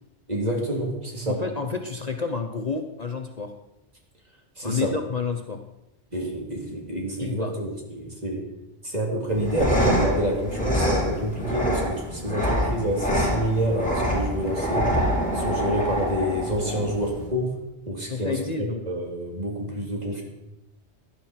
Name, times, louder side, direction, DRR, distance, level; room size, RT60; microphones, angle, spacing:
voice 1, 0.3-1.4 4.6-4.9 6.1-8.4 8.8-14.9 15.3-17.6 17.9-20.2, right 1 dB, 40° right, -1 dB, 3.2 m, -28 dB
voice 2, 1.3-3.5 4.6-5.6 7.2-7.6 18.1-18.8, left 4 dB, 40° left, 4 dB, 1.0 m, -29 dB
sound 1, 9.3-17.3, equal, 5° left, 4.5 m, -26 dB
16.5 x 11.5 x 4.5 m, 0.90 s
omnidirectional pair, 1.1 m